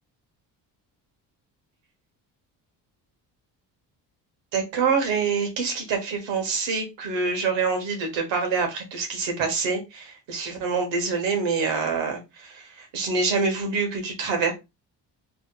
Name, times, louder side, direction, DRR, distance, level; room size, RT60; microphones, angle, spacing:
voice 1, 4.5-14.5, right 4 dB, 80° right, 3 dB, 1.5 m, -26 dB
3.8 x 3.3 x 2.3 m, 0.24 s
supercardioid pair, 65°, 43 cm